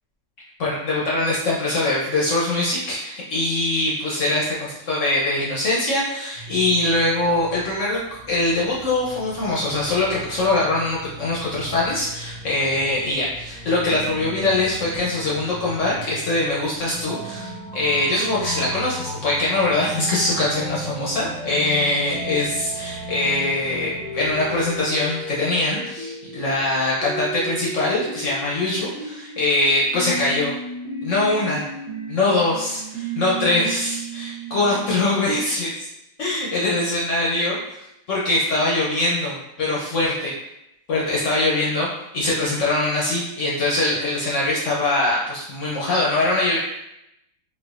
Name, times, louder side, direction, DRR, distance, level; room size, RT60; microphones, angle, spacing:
voice 1, 0.6-30.5 31.0-31.6 32.1-35.9 36.2-40.3 40.9-41.9 42.1-46.6, left 2 dB, 70° left, -5 dB, 0.7 m, -22 dB
sound 1, 6.3-24.8, equal, 20° left, 0.4 m, -38 dB
sound 2, 17.0-35.5, right 2 dB, 65° right, 1.2 m, -35 dB
4.6 x 2.2 x 2.4 m, 0.84 s
omnidirectional pair, 2.0 m